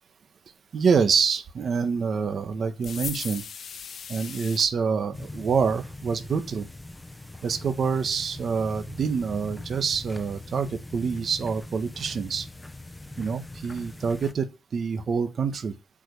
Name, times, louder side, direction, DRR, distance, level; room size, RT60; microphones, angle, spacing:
voice 1, 0.7-3.4 4.1-6.7 7.4-12.5 13.2-14.5 14.7-15.7, right 5 dB, 50° right, 1.2 m, -26 dB
sound 1, 2.8-4.7, left 7 dB, 55° left, 0.8 m, -37 dB
sound 2, 5.1-14.3, left 2 dB, 10° left, 0.9 m, -42 dB
8.6 x 5.1 x 6.9 m
wide cardioid pair, 135°, 0 cm